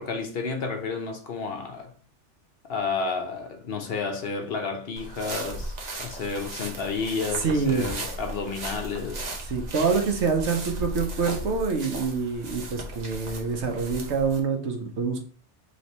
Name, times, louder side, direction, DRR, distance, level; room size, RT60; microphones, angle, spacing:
voice 1, 0.0-1.9 2.7-9.2, left 4 dB, 60° left, 0.8 m, -31 dB
sound 1, 5.0-14.4, right 2 dB, 40° right, 0.8 m, -36 dB
voice 2, 7.4-7.9 9.5-15.3, right 5 dB, 70° right, 1.1 m, -26 dB
3.2 x 3.1 x 4.0 m
omnidirectional pair, 1.3 m